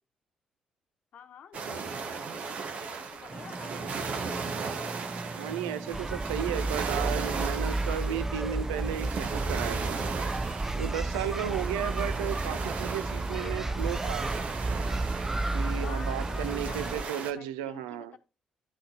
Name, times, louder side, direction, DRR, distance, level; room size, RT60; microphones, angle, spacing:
voice 1, 1.1-4.6 11.3-11.7 13.3-13.9 15.8-18.2, left 7 dB, 65° left, 1.0 m, -49 dB
sound 1, 1.5-17.3, right 5 dB, 60° right, 1.1 m, -37 dB
sound 2, 3.3-17.0, right 3 dB, 35° right, 0.8 m, -41 dB
voice 2, 5.4-10.0 10.8-14.3 15.5-18.1, right 10 dB, 85° right, 0.4 m, -34 dB
sound 3, 5.9-17.0, right 2 dB, 15° right, 0.3 m, -32 dB
11.0 x 6.3 x 2.8 m
hypercardioid pair, 45°, 3 cm